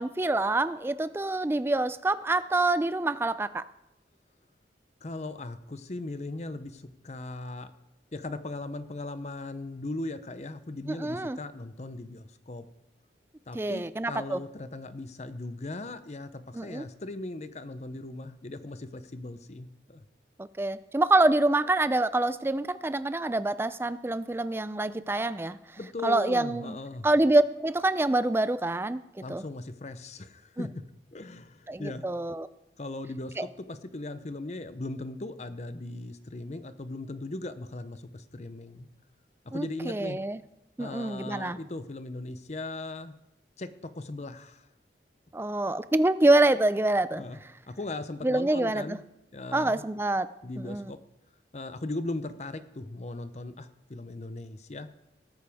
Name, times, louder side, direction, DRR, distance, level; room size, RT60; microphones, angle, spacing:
voice 1, 0.0-3.7 10.9-11.4 13.5-14.4 16.5-16.8 20.4-25.6 26.0-26.8 27.0-29.0 29.3-29.4 30.6-30.7 31.7-32.5 33.4-33.5 39.5-40.4 40.8-41.6 45.3-47.2 48.2-49.0 49.5-50.9, right 2 dB, 15° right, 14 dB, 0.3 m, -26 dB
voice 2, 5.0-7.7 8.1-12.7 13.5-20.0 25.8-27.1 29.2-30.8 31.1-32.1 32.8-38.9 39.4-40.2 40.8-43.1 43.6-44.7 47.2-47.4 47.7-49.0 49.3-49.8 50.4-51.0 51.5-54.9, left 2 dB, 40° left, 11 dB, 0.6 m, -38 dB
18.5 x 9.3 x 3.5 m, 0.91 s
head